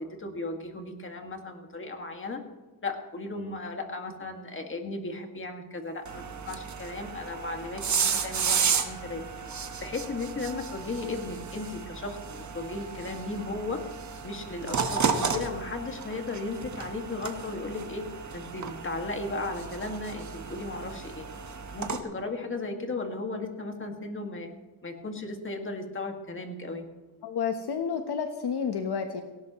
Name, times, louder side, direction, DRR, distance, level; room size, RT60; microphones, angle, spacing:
voice 1, 0.0-2.4 2.8-9.2 9.8-13.8 14.2-18.1 18.3-21.3 21.7-24.5 24.8-26.8, left 3 dB, 25° left, 3 dB, 2.0 m, -36 dB
sound 1, 6.1-22.0, right 6 dB, 40° right, 1.5 m, -33 dB
voice 2, 27.2-29.2, left 6 dB, 60° left, 6 dB, 1.2 m, -30 dB
18.0 x 17.5 x 3.1 m, 1.2 s
wide cardioid pair, 145°, 45 cm